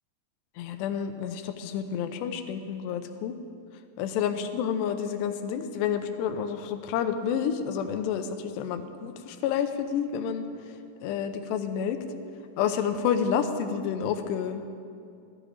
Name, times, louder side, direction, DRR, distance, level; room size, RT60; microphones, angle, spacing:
voice 1, 0.6-3.4 4.0-10.5 11.0-12.0 12.6-14.7, left 8 dB, 80° left, 8 dB, 2.9 m, -29 dB
18.0 x 13.0 x 5.0 m, 2.4 s
omnidirectional pair, 5.0 m